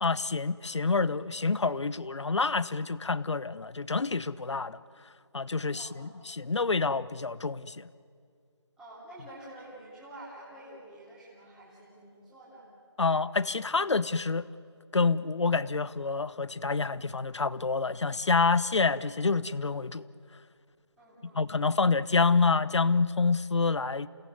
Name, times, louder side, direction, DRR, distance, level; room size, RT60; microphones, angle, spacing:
voice 1, 0.0-4.8 5.3-7.9 13.0-14.5 14.9-20.0 21.2-24.1, left 4 dB, 75° left, 17 dB, 1.0 m, -27 dB
voice 2, 5.7-6.1 8.8-12.6 21.0-21.7, right 1 dB, 5° right, -9 dB, 3.2 m, -49 dB
28.5 x 18.0 x 9.5 m, 2.2 s
figure-of-eight pair, 170°, 15 cm